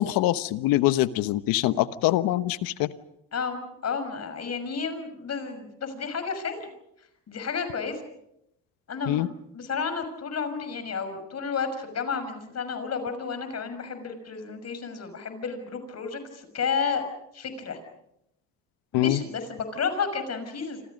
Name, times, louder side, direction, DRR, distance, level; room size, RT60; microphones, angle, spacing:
voice 1, 0.0-2.9 9.1-9.3 18.9-19.2, left 15 dB, 80° left, 14 dB, 1.2 m, -24 dB
voice 2, 3.3-6.7 7.3-8.0 8.9-9.3 9.5-17.0 17.3-17.8 18.9-20.8, left 5 dB, 45° left, 9 dB, 6.2 m, -31 dB
28.0 x 27.0 x 5.3 m, 0.80 s
supercardioid pair, 85°, 35 cm